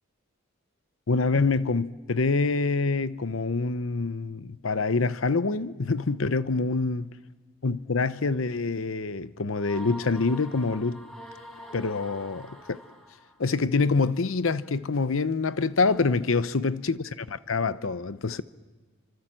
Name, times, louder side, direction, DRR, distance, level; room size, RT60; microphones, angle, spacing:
voice 1, 1.1-7.1 7.6-11.0 11.7-12.8 13.4-17.0 17.3-18.4, left 4 dB, 75° left, 0.8 m, -26 dB
sound 1, 9.6-13.4, equal, ahead, 4.8 m, -45 dB
29.0 x 25.5 x 7.6 m
head